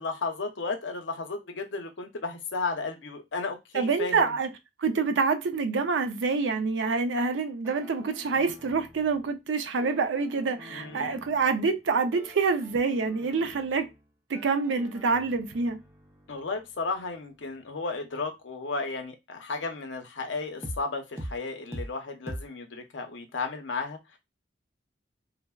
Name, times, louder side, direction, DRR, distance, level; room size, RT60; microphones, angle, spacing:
voice 1, 0.0-4.3 10.7-11.2 16.3-24.2, left 3 dB, 85° left, 0.6 m, -34 dB
voice 2, 3.7-4.5 4.8-13.9 14.3-15.8, right 4 dB, 85° right, 0.5 m, -26 dB
sound 1, 7.6-9.4 9.8-11.8 12.1-14.1 14.3-18.0 20.6-20.8 21.2-21.4 21.7-21.9 22.3-22.5, equal, 15° right, 0.4 m, -45 dB
3.2 x 2.1 x 2.2 m
head